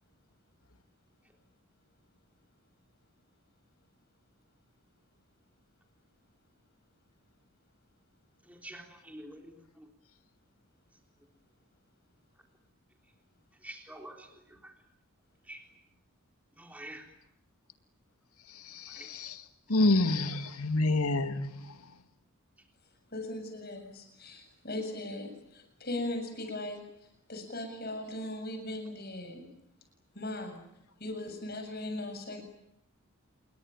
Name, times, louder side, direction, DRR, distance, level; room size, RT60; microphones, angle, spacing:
voice 1, 8.5-9.8 13.6-14.3 14.6-14.7 15.5-15.6 16.6-17.0, right 1 dB, 5° right, 3 dB, 3.6 m, -46 dB
voice 2, 18.5-19.4 19.7-21.8, left 2 dB, 80° left, 9 dB, 2.3 m, -28 dB
voice 3, 23.1-26.8 27.3-29.4 30.1-30.6 31.0-32.4, left 1 dB, 45° left, 6 dB, 7.5 m, -38 dB
28.0 x 23.0 x 9.0 m, 0.78 s
head